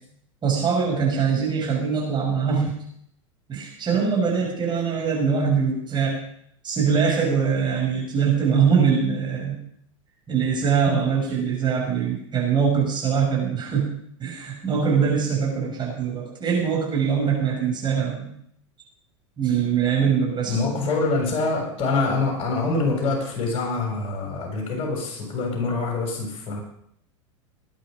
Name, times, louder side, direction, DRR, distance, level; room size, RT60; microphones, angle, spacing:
voice 1, 0.4-2.8 3.5-6.2 6.6-9.6 10.3-13.9 14.2-18.3 19.4-20.6, right 6 dB, 30° right, -2 dB, 6.7 m, -22 dB
voice 2, 20.5-26.6, left 3 dB, 40° left, 0 dB, 7.2 m, -25 dB
19.5 x 10.0 x 5.4 m, 0.69 s
hypercardioid pair, 95°, 16 cm